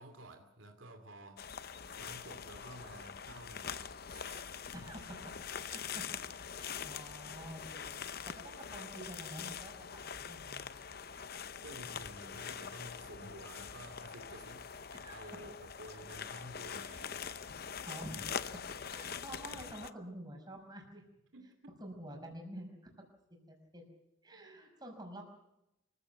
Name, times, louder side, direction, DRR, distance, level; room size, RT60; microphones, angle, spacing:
voice 1, 0.0-4.5 11.6-14.7 15.1-17.4 21.3-21.5, right 1 dB, 85° right, 6 dB, 2.6 m, -52 dB
sound 1, 1.4-19.9, left 7 dB, 50° left, 0.8 m, -44 dB
voice 2, 4.7-5.2 5.6-6.0 6.5-8.0 8.3-10.7 14.9-15.2 17.6-18.3 18.9-21.0 21.8-22.9 23.5-23.8 24.2-25.2, right 1 dB, 20° right, 2 dB, 5.5 m, -48 dB
25.5 x 15.5 x 7.9 m, 0.88 s
head